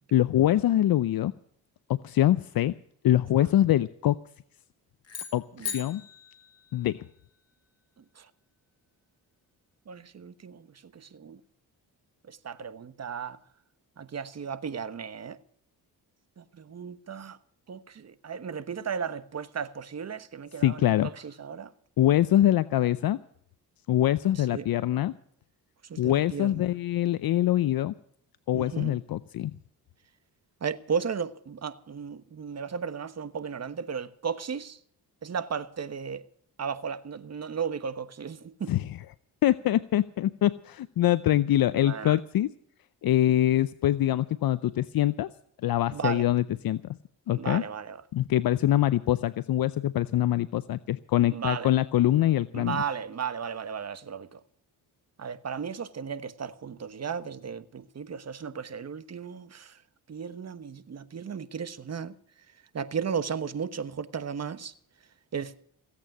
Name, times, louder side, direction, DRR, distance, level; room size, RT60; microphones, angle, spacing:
voice 1, 0.1-1.3 1.9-2.7 3.0-4.2 5.3-5.4 5.7-6.0 6.7-7.0 20.6-21.1 22.0-23.2 23.9-25.1 26.0-27.9 28.5-29.5 38.7-39.0 39.4-42.5 43.0-45.3 45.6-46.8 47.3-47.6 48.1-52.8, left 13 dB, 60° left, 0.7 m, -24 dB
sound 1, 5.0-7.4, left 6 dB, 40° left, 4.9 m, -40 dB
voice 2, 9.9-10.7 10.9-11.4 12.3-13.4 14.0-15.4 16.4-17.4 17.7-20.9 21.2-21.7 24.4-24.6 25.9-26.7 28.5-29.0 30.6-34.8 35.2-36.2 36.6-38.7 41.7-42.2 45.9-46.2 47.3-48.0 51.3-51.7 52.5-54.4 55.2-59.7 60.1-62.1 62.7-64.7 65.3-65.5, right 6 dB, 40° right, 1.3 m, -35 dB
17.0 x 8.7 x 9.0 m
cardioid pair, 80°, 40 cm